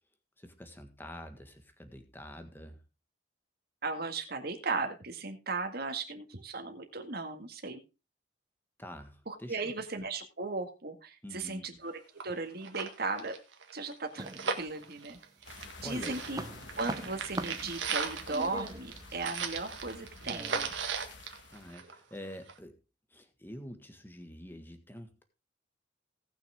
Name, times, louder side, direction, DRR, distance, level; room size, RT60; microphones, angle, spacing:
voice 1, 0.4-2.8 8.8-9.6 11.2-11.6 15.8-16.2 21.5-22.7 23.1-25.2, equal, 10° left, 7 dB, 1.6 m, -46 dB
voice 2, 3.8-7.8 9.3-11.9 12.2-13.4 13.7-14.3 14.6-15.2 15.5-15.6 15.8-16.4 16.8-20.7, right 3 dB, 60° right, 5 dB, 1.9 m, -36 dB
sound 1, 11.8-11.9 12.2-12.3 12.6-15.8 16.0-22.1 22.5-22.6, right 5 dB, 90° right, 1.7 m, -37 dB
sound 2, 14.2-15.2 15.6-20.7, right 2 dB, 20° right, 0.7 m, -43 dB
sound 3, 15.4-21.7, left 3 dB, 85° left, 1.4 m, -50 dB
18.0 x 6.3 x 3.6 m, 0.29 s
head